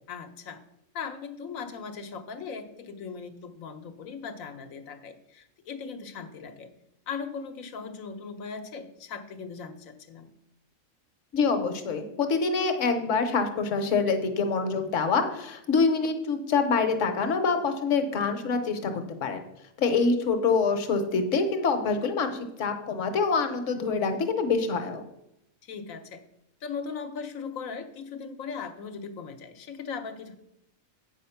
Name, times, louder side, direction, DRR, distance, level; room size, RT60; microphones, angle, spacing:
voice 1, 0.1-0.6 0.9-6.7 7.1-10.3 25.6-26.2 26.6-30.4, left 5 dB, 85° left, 7 dB, 1.3 m, -38 dB
voice 2, 11.3-19.4 19.8-25.0, left 4 dB, 70° left, 8 dB, 1.3 m, -26 dB
8.6 x 5.7 x 5.7 m, 0.81 s
omnidirectional pair, 1.4 m